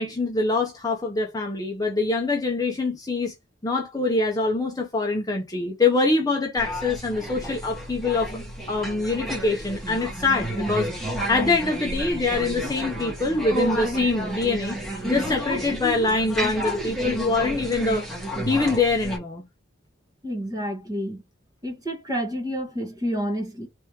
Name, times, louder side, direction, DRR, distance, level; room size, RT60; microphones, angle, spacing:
voice 1, 0.0-3.3 3.6-8.3 8.7-10.9 11.3-18.0 18.5-19.5, left 3 dB, 20° left, 0.7 m, -24 dB
sound 1, 6.6-19.2, equal, ahead, 1.4 m, -31 dB
voice 2, 20.2-21.2 21.6-23.7, equal, 20° right, 1.4 m, -29 dB
3.4 x 3.0 x 4.7 m
head